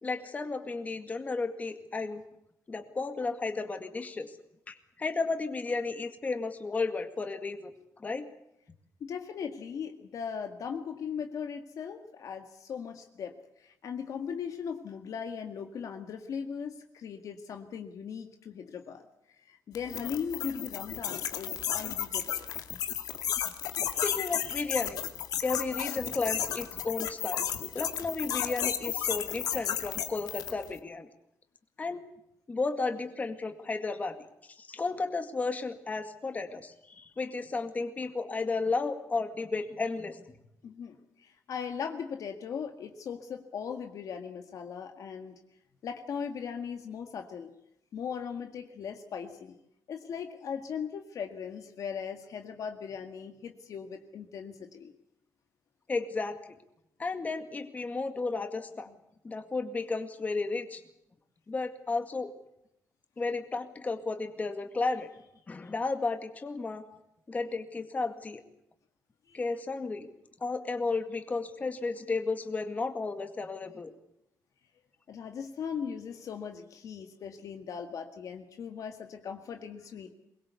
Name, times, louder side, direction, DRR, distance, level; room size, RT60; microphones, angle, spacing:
voice 1, 0.0-2.2 2.7-4.3 4.7-7.7 8.0-8.3 23.9-25.0 25.4-27.5 27.7-31.1 31.8-32.0 32.5-34.2 34.6-40.2 55.9-56.4 57.0-58.9 59.2-60.8 61.5-62.3 63.2-65.1 65.5-66.9 67.3-68.4 69.3-70.1 70.4-73.9, left 3 dB, 25° left, 7 dB, 2.0 m, -33 dB
voice 2, 9.0-19.0 19.4-22.5 40.6-45.4 45.8-47.5 47.9-49.6 49.9-54.9 58.9-59.0 69.3-69.4 75.1-80.1, left 7 dB, 60° left, 5 dB, 1.9 m, -39 dB
sound 1, 19.7-30.7, left 9 dB, 90° left, 2.2 m, -33 dB
23.5 x 21.0 x 8.3 m, 0.80 s
wide cardioid pair, 155°, 6 cm